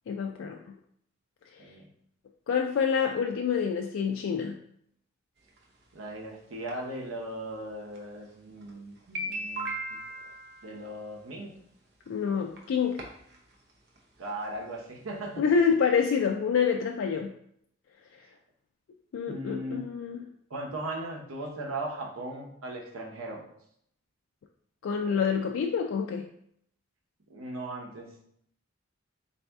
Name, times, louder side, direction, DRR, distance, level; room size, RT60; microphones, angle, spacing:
voice 1, 0.1-0.6 1.6-1.7 2.5-4.6 12.1-13.0 15.4-17.3 19.1-20.2 24.8-26.3, left 6 dB, 70° left, 2 dB, 0.3 m, -27 dB
sound 1, 5.6-5.7 6.7-6.8 7.9-8.0 8.6-8.7 9.0-11.0 12.1-12.2 12.6-12.7 13.0-13.4 13.7-13.8 14.0-14.1 14.4-14.5, right 1 dB, 50° right, 0.7 m, -36 dB
voice 2, 5.9-10.0 10.6-11.5 14.2-15.4 19.3-19.9 20.5-23.4 27.3-28.1, right 1 dB, 90° right, 0 dB, 0.9 m, -38 dB
4.0 x 2.7 x 3.4 m, 0.69 s
head